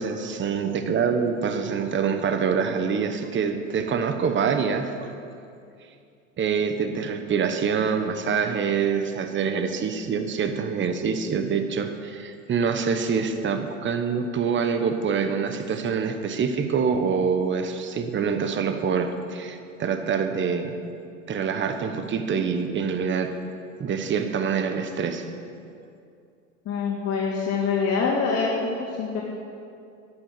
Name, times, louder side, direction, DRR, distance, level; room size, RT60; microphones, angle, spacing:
voice 1, 0.0-5.1 6.4-20.8 21.3-23.3 23.8-25.2, right 6 dB, 30° right, 7 dB, 1.3 m, -25 dB
voice 2, 26.6-28.5 28.8-29.2, left 5 dB, 40° left, -4 dB, 2.7 m, -25 dB
11.5 x 9.9 x 8.0 m, 2.5 s
hypercardioid pair, 95°, 39 cm